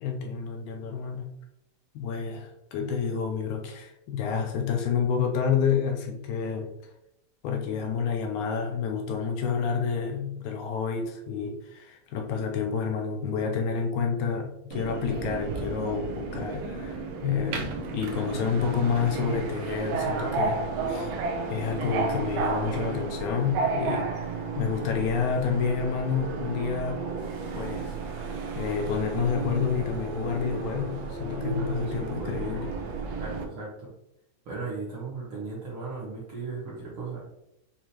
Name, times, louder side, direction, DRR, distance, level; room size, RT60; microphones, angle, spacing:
voice 1, 0.0-1.3 2.0-6.7 7.4-17.7 17.9-20.6 20.9-21.1 21.5-24.1 24.6-27.0 27.6-32.7, left 6 dB, 80° left, 2 dB, 1.9 m, -29 dB
Subway metro underground, 14.7-33.4, right 4 dB, 85° right, 1.4 m, -32 dB
voice 2, 31.6-32.7 33.2-33.9 34.4-37.2, right 4 dB, 55° right, -6 dB, 1.6 m, -37 dB
6.7 x 2.7 x 2.9 m, 0.83 s
omnidirectional pair, 3.6 m